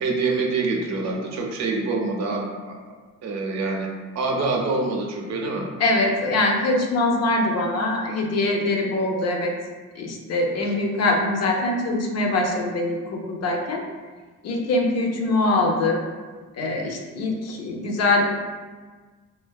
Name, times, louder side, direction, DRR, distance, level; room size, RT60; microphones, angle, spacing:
voice 1, 0.0-2.8 3.2-3.9 4.1-5.7 10.6-10.8, right 3 dB, 60° right, 1 dB, 0.5 m, -25 dB
voice 2, 5.8-9.5 10.0-13.8 14.4-16.0 16.6-18.3, left 2 dB, 55° left, 1 dB, 0.5 m, -23 dB
2.5 x 2.2 x 2.2 m, 1.4 s
cardioid pair, 90°, 30 cm